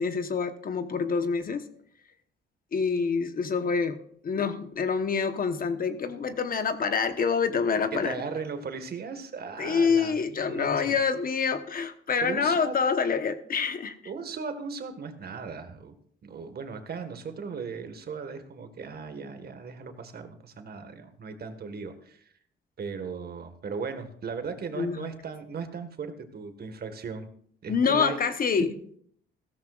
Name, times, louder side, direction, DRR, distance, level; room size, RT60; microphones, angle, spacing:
voice 1, 0.0-1.7 2.7-4.0 4.2-8.2 9.6-14.0 24.8-25.1 27.7-28.7, left 5 dB, 45° left, 10 dB, 1.1 m, -26 dB
voice 2, 7.9-11.0 12.2-12.8 14.0-15.9 16.2-22.3 22.8-27.3 27.6-28.2 28.6-28.7, right 5 dB, 50° right, 7 dB, 1.7 m, -37 dB
16.0 x 14.0 x 2.5 m, 0.62 s
cardioid pair, 90°, 20 cm